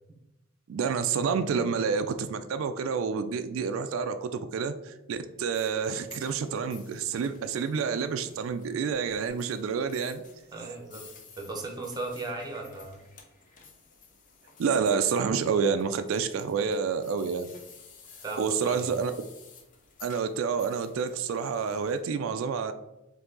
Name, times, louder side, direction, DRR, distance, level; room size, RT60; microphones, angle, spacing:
voice 1, 0.7-10.2 14.6-17.5 18.4-19.1 20.0-22.7, right 6 dB, 85° right, 9 dB, 0.3 m, -28 dB
sound 1, 5.5-22.0, left 5 dB, 40° left, 0.7 m, -53 dB
voice 2, 10.5-11.0 11.4-13.0 18.2-18.9, right 2 dB, 20° right, 1 dB, 0.8 m, -36 dB
4.7 x 2.7 x 3.8 m, 0.93 s
head